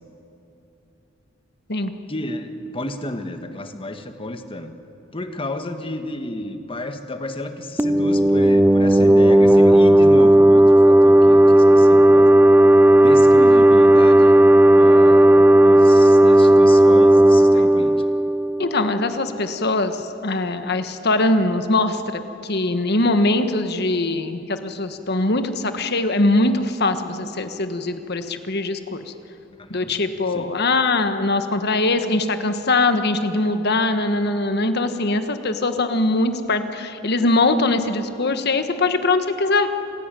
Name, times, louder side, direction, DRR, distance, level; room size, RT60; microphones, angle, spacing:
voice 1, 2.1-4.7 5.1-12.3 13.0-14.4 14.7-17.9 29.6-29.9 30.3-30.5, left 1 dB, 30° left, 7 dB, 1.5 m, -32 dB
sound 1, 7.8-19.2, right 1 dB, 10° right, 0.5 m, -13 dB
voice 2, 18.6-29.0 29.7-39.7, left 2 dB, 55° left, 8 dB, 1.5 m, -22 dB
27.0 x 16.5 x 9.1 m, 2.8 s
head